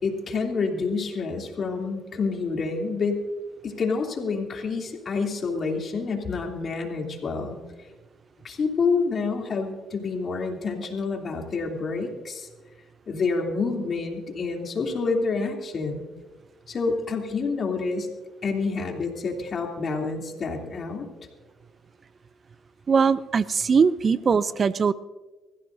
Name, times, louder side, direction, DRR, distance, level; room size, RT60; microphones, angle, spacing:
voice 1, 0.0-3.3 3.6-7.6 8.4-12.5 13.1-16.1 16.7-18.1 18.4-21.0, left 4 dB, 50° left, 1 dB, 2.9 m, -28 dB
voice 2, 22.9-24.9, right 5 dB, 45° right, 16 dB, 0.5 m, -21 dB
24.5 x 15.0 x 2.7 m, 1.3 s
cardioid pair, 80°, 0 cm